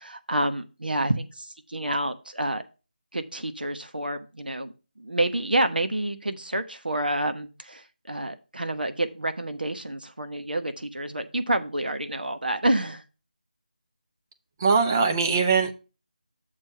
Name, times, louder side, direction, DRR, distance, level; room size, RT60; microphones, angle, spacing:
voice 1, 0.0-2.6 3.1-13.0, right 1 dB, 75° right, 1.1 m, -28 dB
voice 2, 14.6-15.7, right 5 dB, 20° right, 0.7 m, -21 dB
6.7 x 4.5 x 5.7 m
figure-of-eight pair, 160°, 5 cm